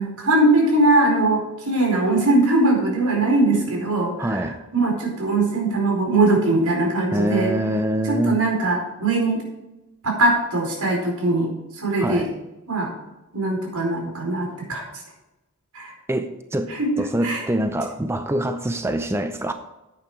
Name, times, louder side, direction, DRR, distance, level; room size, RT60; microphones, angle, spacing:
voice 1, 0.0-7.5 8.0-9.4 10.0-12.3 12.7-12.9 13.3-14.8 15.7-15.9 16.7-16.9 17.2-17.4, right 2 dB, 80° right, 1 dB, 4.6 m, -21 dB
voice 2, 4.2-4.6 7.1-8.4 12.0-12.3 16.1-19.5, right 1 dB, 10° right, 7 dB, 0.6 m, -25 dB
10.5 x 8.9 x 4.9 m, 0.99 s
head